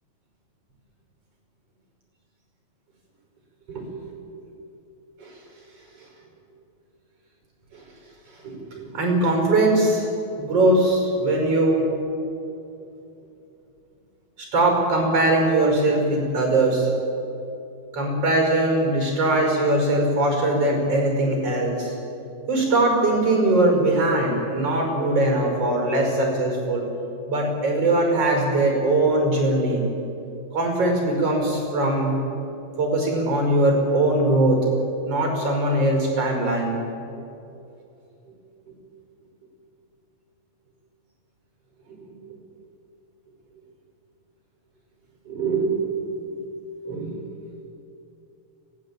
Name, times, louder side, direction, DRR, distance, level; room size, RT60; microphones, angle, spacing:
voice 1, 3.7-4.4 5.2-5.3 7.7-7.8 8.4-10.1 10.4-11.8 14.4-16.9 17.9-22.0 22.5-26.9 27.3-29.8 30.5-32.1 32.8-34.6 35.1-36.8 41.9-42.1 45.3-46.0 46.8-47.1, right 2 dB, 40° right, 1 dB, 6.5 m, -21 dB
24.5 x 18.5 x 8.9 m, 2.8 s
omnidirectional pair, 4.5 m